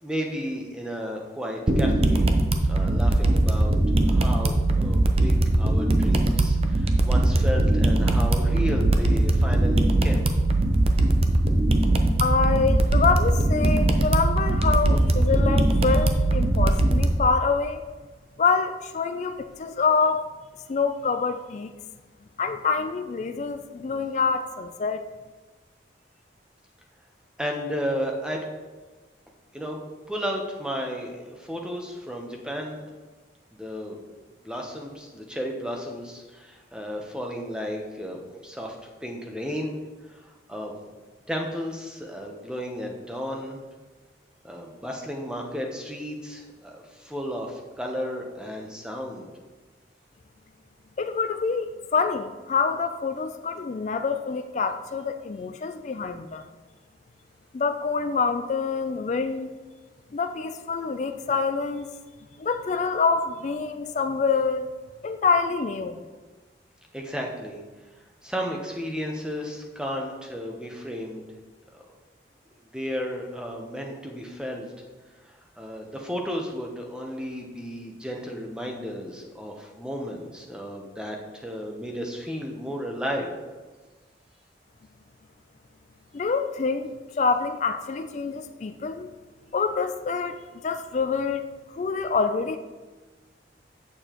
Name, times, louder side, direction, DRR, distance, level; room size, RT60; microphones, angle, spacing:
voice 1, 0.0-2.3 2.7-10.3 27.4-28.4 29.5-29.8 30.1-32.8 33.6-34.0 34.4-39.8 40.1-40.7 41.3-43.6 44.4-49.3 66.9-67.6 68.2-71.3 71.8-71.9 72.7-74.7 75.2-83.3, equal, 5° right, 1 dB, 0.8 m, -33 dB
sound 1, 1.7-17.1, right 1 dB, 35° right, 0.5 m, -21 dB
voice 2, 12.2-17.8 18.4-20.2 20.7-21.7 22.4-25.0 51.0-56.5 57.5-59.5 60.1-61.9 62.4-64.7 65.0-66.0 86.1-86.9 87.2-89.1 89.5-90.4 90.6-91.4 91.7-92.6, left 5 dB, 40° left, 7 dB, 0.3 m, -26 dB
8.6 x 6.8 x 3.0 m, 1.3 s
head